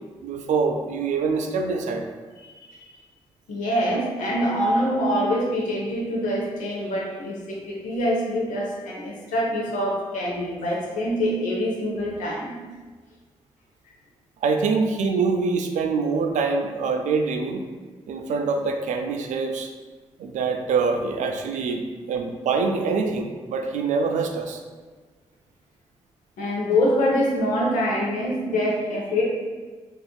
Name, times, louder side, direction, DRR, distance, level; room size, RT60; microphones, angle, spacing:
voice 1, 0.2-2.1 14.4-17.6 18.1-19.7 20.2-24.6, right 4 dB, 70° right, 4 dB, 0.4 m, -25 dB
voice 2, 2.4-2.9 3.5-12.6 26.4-29.2, equal, 80° left, -2 dB, 0.7 m, -25 dB
3.4 x 2.4 x 2.3 m, 1.4 s
supercardioid pair, 40°, 13 cm